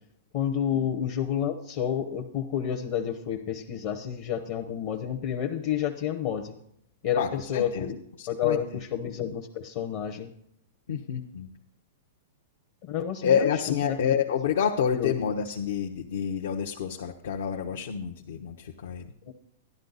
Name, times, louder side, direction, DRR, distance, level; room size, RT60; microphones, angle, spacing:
voice 1, 0.3-6.5 7.0-7.9 8.3-10.3 12.8-14.0 14.9-15.1 19.3-19.4, left 9 dB, 40° left, 2 dB, 0.9 m, -30 dB
voice 2, 7.2-7.9 8.2-8.6 10.9-11.5 13.2-19.1, left 7 dB, 65° left, 2 dB, 1.0 m, -28 dB
12.0 x 12.0 x 4.0 m, 0.72 s
supercardioid pair, 170°, 0 cm